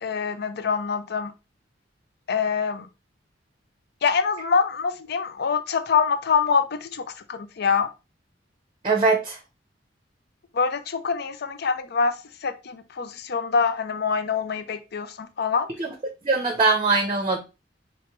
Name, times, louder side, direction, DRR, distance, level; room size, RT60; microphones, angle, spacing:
voice 1, 0.0-1.3 2.3-2.9 4.0-7.9 10.5-15.7, left 5 dB, 55° left, 0.5 m, -25 dB
voice 2, 8.8-9.4 15.8-15.9 16.2-17.4, right 3 dB, 30° right, 0.6 m, -21 dB
4.6 x 3.0 x 3.0 m
head